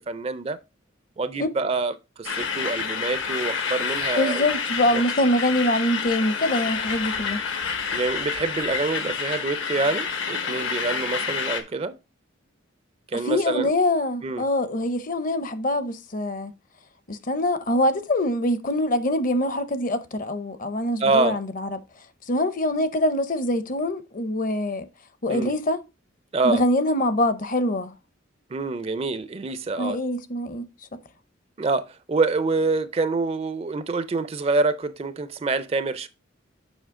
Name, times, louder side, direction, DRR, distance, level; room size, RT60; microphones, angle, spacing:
voice 1, 0.1-0.6 1.2-4.5 4.9-5.0 7.9-12.0 13.1-13.7 14.2-14.4 21.0-21.4 25.3-25.5 26.3-26.6 28.5-30.0 31.6-36.1, right 3 dB, 30° right, 0.4 m, -26 dB
sound 1, 2.2-11.6, left 6 dB, 75° left, 1.2 m, -28 dB
voice 2, 4.2-7.4 13.1-16.5 17.1-21.8 22.3-24.8 25.2-25.8 26.4-27.9 29.8-30.6, left 1 dB, 45° left, 0.7 m, -24 dB
7.2 x 5.5 x 3.6 m
head